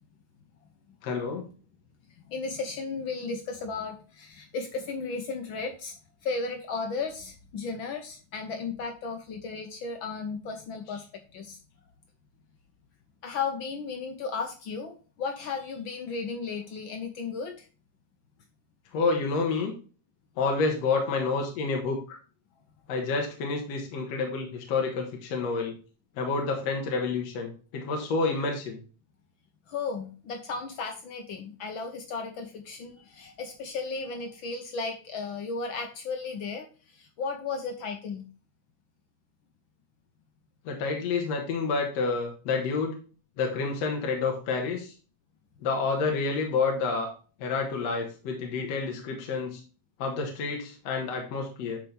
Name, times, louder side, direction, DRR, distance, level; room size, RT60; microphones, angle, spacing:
voice 1, 1.0-1.4 18.9-19.7 20.4-22.2 22.9-25.7 26.2-28.8 40.7-42.9 43.4-44.9 45.6-47.1 47.4-49.6 50.0-51.8, left 4 dB, 60° left, 1 dB, 2.5 m, -29 dB
voice 2, 2.3-6.0 6.2-11.6 13.2-17.7 29.7-38.3, left 4 dB, 90° left, 5 dB, 1.0 m, -35 dB
11.5 x 4.5 x 3.4 m, 0.36 s
omnidirectional pair, 3.4 m